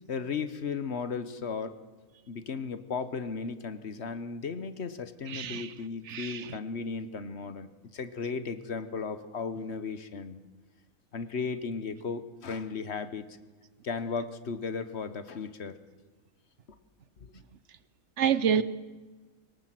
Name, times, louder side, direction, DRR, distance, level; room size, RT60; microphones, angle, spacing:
voice 1, 0.1-1.8 2.3-10.4 11.1-13.4 13.8-15.8 16.7-16.8 17.2-17.4, left 5 dB, 55° left, 1.3 m, -35 dB
voice 2, 5.3-5.7 6.1-6.5 18.2-18.6, right 8 dB, 60° right, 1.2 m, -27 dB
22.5 x 18.5 x 7.7 m
omnidirectional pair, 1.4 m